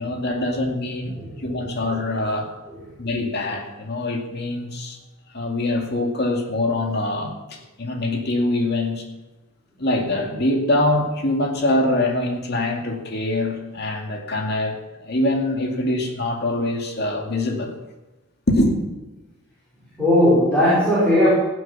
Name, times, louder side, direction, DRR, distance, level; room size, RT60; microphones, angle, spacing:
voice 1, 0.0-1.1 1.4-2.5 3.0-5.0 5.3-9.0 9.8-14.7 15.0-17.8 18.5-18.8, left 1 dB, 50° left, 2 dB, 2.3 m, -24 dB
voice 2, 1.1-2.0 2.7-2.8 20.0-21.3, left 1 dB, 5° left, -10 dB, 5.2 m, -19 dB
17.5 x 7.9 x 6.0 m, 1.1 s
head